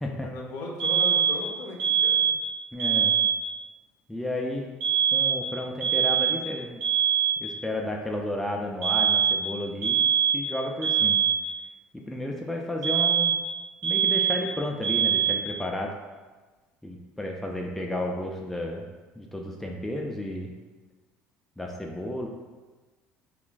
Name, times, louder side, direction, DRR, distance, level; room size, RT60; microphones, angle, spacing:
voice 1, 0.1-2.3, left 2 dB, 65° left, 0 dB, 0.7 m, -37 dB
sound 1, 0.8-1.5 1.8-2.5 2.8-3.5 4.8-5.5 5.8-6.5 6.8-7.5 8.8-9.5 9.8-10.5 10.8-11.5 12.8-13.5 13.8-14.5 14.8-15.5, right 8 dB, 80° right, 0.6 m, -23 dB
voice 2, 2.7-3.2 4.1-4.7 5.1-6.8 7.4-10.0 10.3-11.2 11.9-13.3 13.8-16.0 16.8-18.9 19.1-20.5 21.6-22.3, left 1 dB, 5° left, 0 dB, 0.4 m, -32 dB
2.4 x 2.4 x 3.8 m, 1.3 s
supercardioid pair, 100°, 5 cm